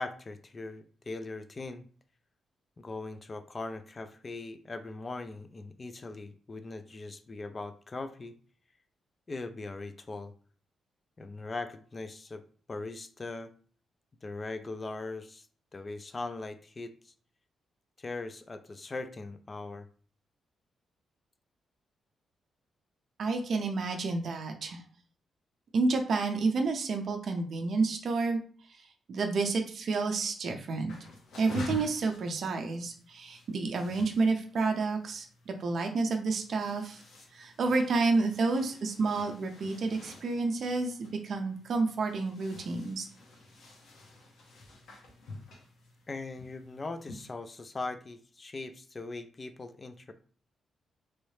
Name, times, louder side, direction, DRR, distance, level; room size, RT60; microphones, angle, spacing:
voice 1, 0.0-1.8 2.8-8.4 9.3-10.3 11.2-12.4 12.7-13.5 14.2-15.5 15.7-17.1 18.0-19.9 46.1-50.1, left 3 dB, 25° left, 10 dB, 0.3 m, -40 dB
voice 2, 23.2-24.8 25.7-28.4 29.1-30.9 31.4-37.0 37.3-43.1, right 3 dB, 55° right, 4 dB, 0.5 m, -30 dB
sound 1, 30.9-47.3, left 2 dB, 90° left, 0.9 m, -48 dB
3.0 x 2.7 x 3.2 m, 0.43 s
cardioid pair, 140°, 0 cm